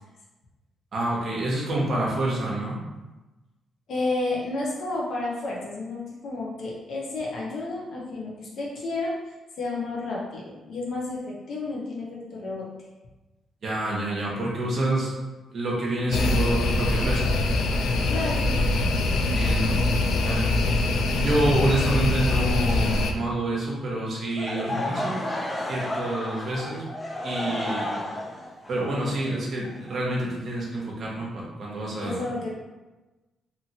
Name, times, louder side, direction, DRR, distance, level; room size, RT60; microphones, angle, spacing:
voice 1, 0.9-2.8 13.6-15.1 15.5-17.3 19.3-20.5 21.0-25.3 25.7-26.8 27.2-28.1 28.7-32.2, right 1 dB, 55° right, -4 dB, 0.7 m, -28 dB
voice 2, 3.9-9.1 9.6-12.7 18.1-18.5 18.8-19.2 32.0-32.5, left 2 dB, 60° left, -4 dB, 0.7 m, -31 dB
sound 1, 16.1-23.1, left 2 dB, 80° left, 0.3 m, -23 dB
Laughter / Crowd, 24.3-30.2, left 1 dB, 15° left, 0.4 m, -32 dB
2.8 x 2.8 x 2.7 m, 1.1 s
cardioid pair, 105°, 0 cm